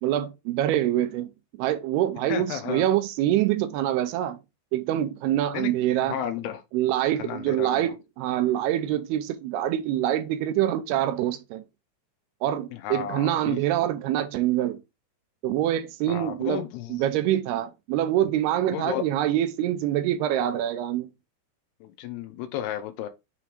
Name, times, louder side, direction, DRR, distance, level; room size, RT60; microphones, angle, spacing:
voice 1, 0.0-1.3 1.6-4.4 4.7-6.2 6.7-11.6 12.4-14.8 15.4-16.6 16.9-21.1, right 12 dB, 80° right, 2.5 m, -25 dB
voice 2, 2.3-2.8 5.5-5.7 6.1-6.6 7.2-7.9 12.7-13.6 16.1-16.9 18.7-19.0 21.8-23.1, left 10 dB, 80° left, 2.7 m, -32 dB
6.8 x 3.1 x 5.0 m
omnidirectional pair, 4.9 m